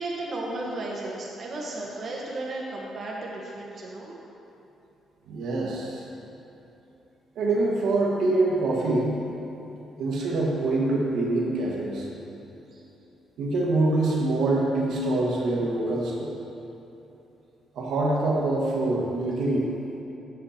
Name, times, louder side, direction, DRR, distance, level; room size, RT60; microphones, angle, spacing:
voice 1, 0.0-4.2 12.7-12.8, right 2 dB, 45° right, -4 dB, 1.4 m, -34 dB
voice 2, 5.3-6.0 7.3-9.4 10.0-12.1 13.4-16.3 17.7-19.7, right 2 dB, 75° right, -3 dB, 1.5 m, -25 dB
8.1 x 6.8 x 4.3 m, 3.0 s
cardioid pair, 90°, 0 cm